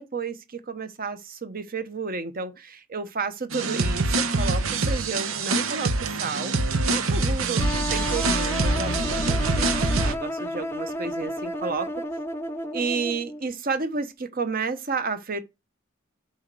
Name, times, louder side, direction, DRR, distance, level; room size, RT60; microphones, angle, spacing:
voice 1, 0.0-7.6 7.9-12.0 12.7-15.4, right 4 dB, 45° right, 1.0 m, -31 dB
sound 1, 3.5-10.1, right 3 dB, 80° right, 1.0 m, -24 dB
sound 2, 7.6-13.4, left 1 dB, 10° left, 0.7 m, -32 dB
7.1 x 5.1 x 6.1 m
head